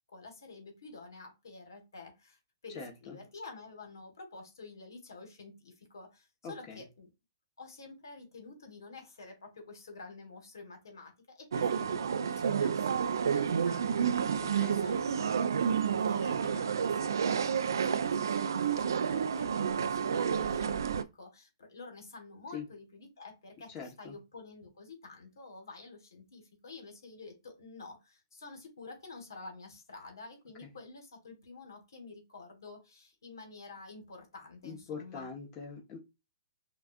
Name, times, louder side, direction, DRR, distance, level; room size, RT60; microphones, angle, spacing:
voice 1, 0.1-7.1 7.6-15.5 16.1-35.3, left 3 dB, 75° left, 4 dB, 1.5 m, -49 dB
voice 2, 6.4-6.8 14.6-14.8 22.5-22.6 23.7-24.1 34.6-36.0, left 5 dB, 30° left, 1 dB, 1.0 m, -42 dB
sound 1, 11.5-21.0, right 7 dB, 75° right, 0.4 m, -30 dB
5.8 x 2.4 x 2.4 m, 0.25 s
hypercardioid pair, 120°, 2 cm